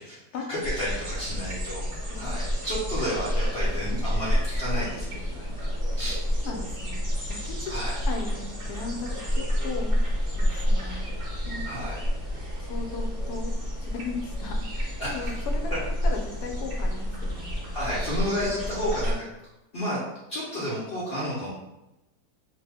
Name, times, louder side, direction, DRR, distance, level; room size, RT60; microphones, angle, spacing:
voice 1, 0.5-1.8 2.2-5.7 6.0-6.2 7.7-8.0 11.6-12.0 15.0-15.4 17.7-19.2 19.7-20.0 20.3-21.5, equal, 50° left, -7 dB, 0.8 m, -31 dB
sound 1, 0.6-19.2, equal, 45° right, 0.8 m, -29 dB
voice 2, 6.4-7.7 8.1-10.0 10.3-11.2 11.5-11.7 12.6-13.5 13.8-15.7 16.0-17.6, left 4 dB, 75° left, 2 dB, 1.1 m, -37 dB
2.7 x 2.1 x 3.3 m, 0.94 s
omnidirectional pair, 1.7 m